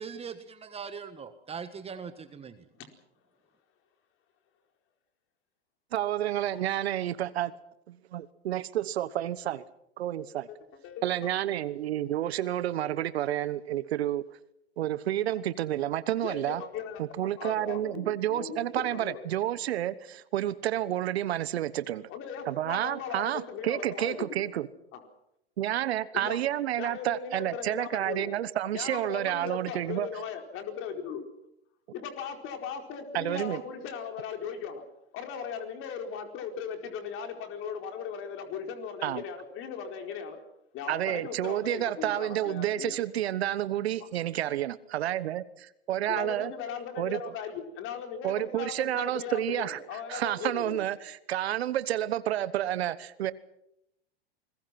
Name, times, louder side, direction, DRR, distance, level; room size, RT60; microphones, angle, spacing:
voice 1, 0.0-2.7, right 6 dB, 20° right, 1.4 m, -41 dB
voice 2, 5.9-7.5 7.9-9.6 10.0-10.5 11.0-14.2 14.8-16.6 17.0-22.1 22.5-24.7 25.6-30.1 33.1-33.6 39.0-39.2 40.9-46.5 47.0-47.3 48.2-53.3, right 12 dB, 75° right, 1.2 m, -30 dB
voice 3, 10.8-11.3 16.2-19.2 22.1-24.5 24.9-25.0 26.1-26.4 26.8-28.3 28.7-31.3 31.9-34.8 35.1-40.4 40.7-43.0 46.1-50.8, left 7 dB, 40° left, 4.6 m, -38 dB
28.0 x 21.0 x 6.0 m
hypercardioid pair, 115°, 32 cm